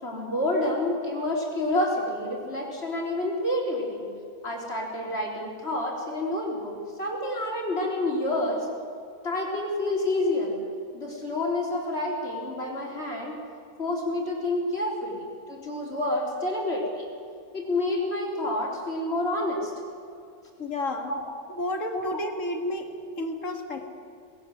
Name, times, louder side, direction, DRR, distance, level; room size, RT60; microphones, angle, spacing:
voice 1, 0.0-4.1 4.4-8.7 9.2-10.6 10.9-13.4 13.8-17.1 17.5-19.7 21.1-21.2 21.9-22.2, left 1 dB, 45° left, -1 dB, 4.1 m, -28 dB
voice 2, 20.6-21.1 21.5-23.9, left 1 dB, 60° left, 5 dB, 2.2 m, -31 dB
20.0 x 17.5 x 7.8 m, 2.3 s
omnidirectional pair, 1.5 m